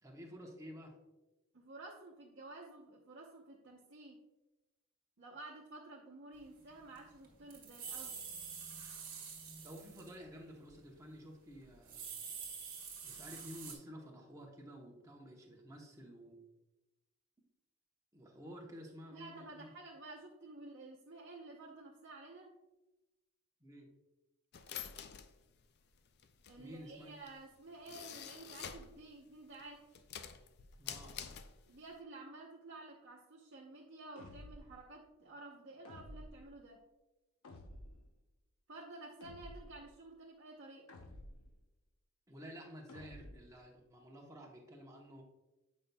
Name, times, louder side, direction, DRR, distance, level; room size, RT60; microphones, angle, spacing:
voice 1, 0.0-0.9 9.6-12.1 13.0-16.4 18.1-19.7 23.6-23.9 26.6-27.2 30.8-31.2 42.3-45.2, equal, 15° right, 0 dB, 0.9 m, -52 dB
voice 2, 1.5-4.2 5.2-8.2 19.1-22.5 26.5-29.8 31.7-36.8 38.7-40.9, right 2 dB, 55° right, -4 dB, 0.9 m, -52 dB
sound 1, 6.7-6.8 7.0-10.3 10.5-10.7 11.6-13.8, right 6 dB, 40° right, 1.4 m, -47 dB
sound 2, 24.5-29.0 29.4-32.0, left 8 dB, 50° left, 0.4 m, -48 dB
sound 3, 34.2-34.8 35.9-36.5 37.4-38.1 39.2-39.8 40.9-41.6 42.9-43.5, left 1 dB, 75° left, 0.8 m, -52 dB
8.4 x 5.2 x 2.3 m, 1.0 s
head